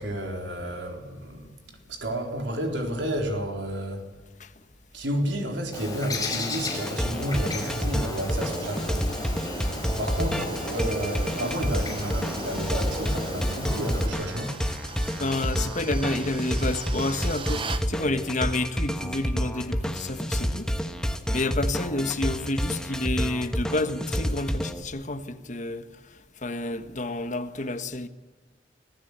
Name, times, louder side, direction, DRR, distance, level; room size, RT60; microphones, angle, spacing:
voice 1, 0.0-4.1 4.9-9.1 10.0-14.6, right 1 dB, 75° right, 4.2 m, -31 dB
Bird, 5.7-14.1, left 2 dB, 20° left, 5.3 m, -35 dB
sound 1, 6.7-24.8, equal, 5° left, 1.4 m, -29 dB
sound 2, 7.0-17.9, right 5 dB, 30° right, 1.1 m, -42 dB
voice 2, 15.2-20.7 21.3-25.9 26.4-28.1, left 2 dB, 40° left, 1.4 m, -29 dB
25.5 x 15.5 x 8.2 m
head